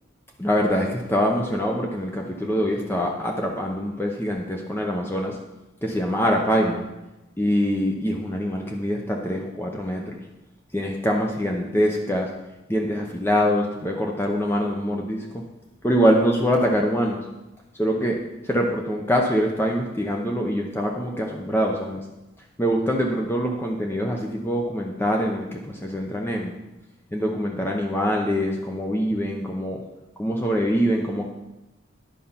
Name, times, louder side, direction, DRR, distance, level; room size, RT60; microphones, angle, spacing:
voice 1, 0.4-5.4 5.8-6.9 7.4-10.2 10.7-12.3 12.7-15.4 15.8-17.2 17.8-18.2 18.4-22.0 22.6-26.5 27.1-29.8 30.2-31.3, equal, 10° left, 0 dB, 0.7 m, -24 dB
10.5 x 5.4 x 5.7 m, 1.0 s
head